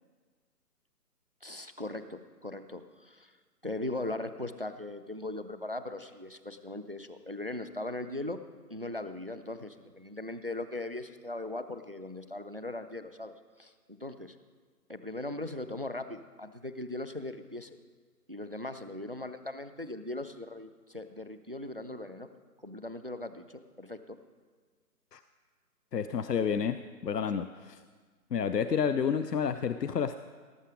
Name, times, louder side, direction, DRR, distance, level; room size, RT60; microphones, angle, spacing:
voice 1, 1.4-3.3 3.6-8.4 8.7-14.4 14.9-17.8 18.3-22.3 22.6-24.2 27.3-27.4, left 2 dB, 40° right, 11 dB, 0.4 m, -39 dB
voice 2, 25.9-27.8 28.3-30.2, left 7 dB, 80° left, 12 dB, 0.6 m, -30 dB
18.0 x 7.1 x 5.0 m, 1.5 s
figure-of-eight pair, 145°, 48 cm